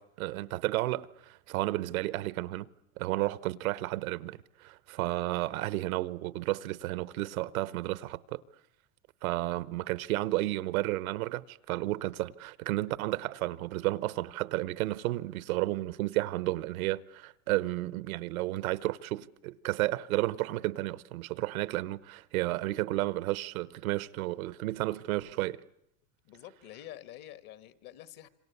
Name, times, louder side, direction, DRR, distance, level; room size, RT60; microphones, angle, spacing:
voice 1, 0.0-2.7 3.0-8.4 9.2-25.6, right 17 dB, 85° right, 1.0 m, -32 dB
voice 2, 26.3-28.3, left 13 dB, 50° left, 1.8 m, -48 dB
27.0 x 25.5 x 8.3 m
supercardioid pair, 125°, 41 cm